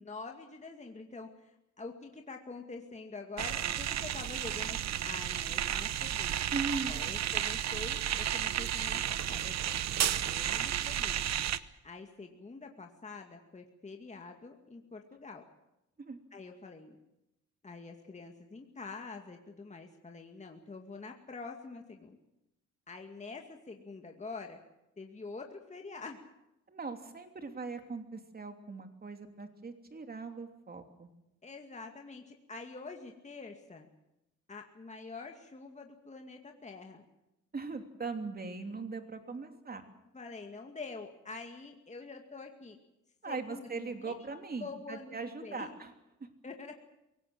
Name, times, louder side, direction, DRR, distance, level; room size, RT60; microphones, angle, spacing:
voice 1, 0.1-6.4 6.9-11.3 11.8-15.4 16.3-17.0 17.6-22.2 22.9-24.6 25.0-26.2 31.4-33.9 34.5-37.1 40.1-42.8 43.3-44.3 44.6-45.7 46.4-46.7, left 3 dB, 25° left, 3 dB, 2.3 m, -46 dB
sound 1, 3.4-11.6, right 10 dB, 60° right, 1.0 m, -33 dB
voice 2, 6.5-6.9 16.0-16.2 26.7-31.1 37.5-39.8 43.2-45.9 46.2-46.3, right 4 dB, 30° right, 6 dB, 3.1 m, -40 dB
23.0 x 18.5 x 7.8 m, 0.91 s
cardioid pair, 90°, 30 cm